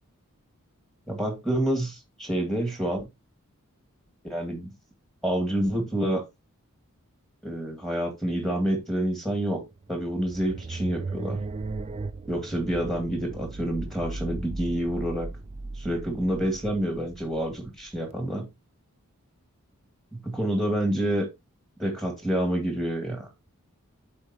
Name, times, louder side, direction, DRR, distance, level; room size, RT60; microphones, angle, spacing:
voice 1, 1.1-3.0 4.2-4.7 5.2-6.2 7.4-11.4 12.3-15.3 15.8-18.5 20.2-21.3 21.8-23.3, right 1 dB, ahead, 1.8 m, -28 dB
sound 1, 9.6-18.0, right 3 dB, 30° right, 0.4 m, -37 dB
11.5 x 4.2 x 2.7 m
head